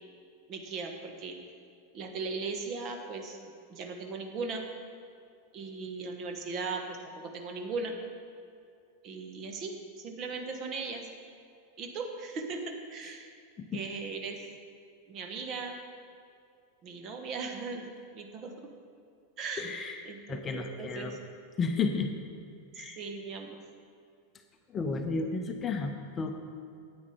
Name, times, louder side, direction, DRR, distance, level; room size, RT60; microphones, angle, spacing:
voice 1, 0.5-1.3 1.9-4.6 5.5-7.9 9.0-11.0 11.8-13.3 13.7-14.4 15.1-15.8 16.8-17.8 18.1-18.5 19.4-19.7 20.0-21.2 22.8-23.6, right 4 dB, 35° right, 3 dB, 1.2 m, -38 dB
voice 2, 19.6-20.0 20.3-21.2 21.6-22.1 22.7-23.0 24.7-26.3, left 4 dB, 25° left, 5 dB, 0.7 m, -32 dB
9.5 x 9.0 x 4.9 m, 2.4 s
figure-of-eight pair, 90°, 0 cm